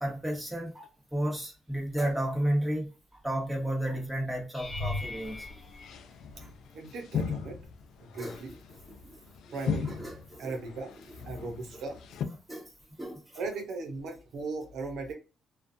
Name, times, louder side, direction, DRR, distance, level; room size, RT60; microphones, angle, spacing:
voice 1, 0.0-5.5 6.4-6.5 8.2-8.4 9.0-9.2 9.8-10.6 12.5-12.7 13.0-13.4, right 1 dB, 5° right, 1.2 m, -33 dB
sound 1, 4.5-6.8 7.5-8.0 8.3-8.5 12.8-12.9, left 2 dB, 10° left, 1.4 m, -39 dB
sound 2, 5.2-5.5 5.8-12.2, left 7 dB, 80° left, 0.4 m, -38 dB
voice 2, 6.7-7.6 8.0-8.5 9.5-10.0 10.4-10.9 11.2-12.0 13.3-15.1, right 3 dB, 70° right, 0.8 m, -37 dB
2.5 x 2.4 x 2.5 m
cardioid pair, 90°, 0 cm